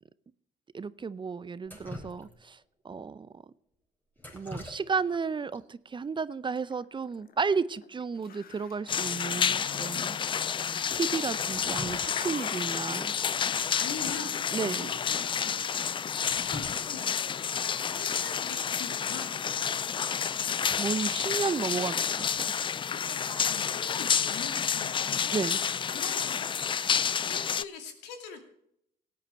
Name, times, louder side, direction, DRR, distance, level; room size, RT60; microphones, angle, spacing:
voice 1, 0.7-2.6 2.8-3.4 4.3-10.2 10.9-13.1 14.5-14.9 20.2-20.3 20.6-22.0 22.3-22.5 25.3-25.6, right 5 dB, 30° right, 17 dB, 0.6 m, -33 dB
Drip, 1.6-2.6 4.2-5.2 5.5-5.6 6.6-6.7 6.9-7.2 7.5-7.6 8.0-8.1 8.5-8.6 9.2-9.3 10.0-10.1 11.3-12.5 12.9-13.0 14.3-14.4 14.8-14.9 15.4-15.5 15.9-17.6 19.6-19.9 20.3-20.7, left 1 dB, 10° left, 4.2 m, -45 dB
Growling, 6.6-7.9 8.2-9.6 10.4-11.4 11.9-12.8, left 8 dB, 60° left, 1.3 m, -47 dB
sound 1, 8.9-27.6, left 7 dB, 30° left, 0.4 m, -30 dB
voice 2, 11.2-11.8 12.5-12.7 13.7-15.9 16.3-17.5 17.8-19.8 22.9-28.4, left 5 dB, 80° left, 6 dB, 2.4 m, -44 dB
17.5 x 9.3 x 4.5 m, 0.73 s
supercardioid pair, 65°, 17 cm